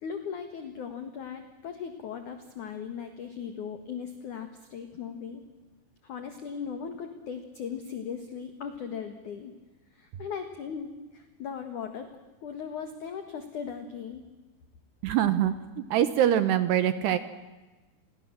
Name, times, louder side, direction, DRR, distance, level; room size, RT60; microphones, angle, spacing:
voice 1, 0.0-5.4 6.0-9.5 9.9-12.1 12.4-14.2, left 7 dB, 55° left, 7 dB, 2.3 m, -38 dB
voice 2, 15.0-17.2, right 11 dB, 70° right, 12 dB, 2.7 m, -24 dB
29.5 x 23.0 x 7.6 m, 1.2 s
omnidirectional pair, 5.7 m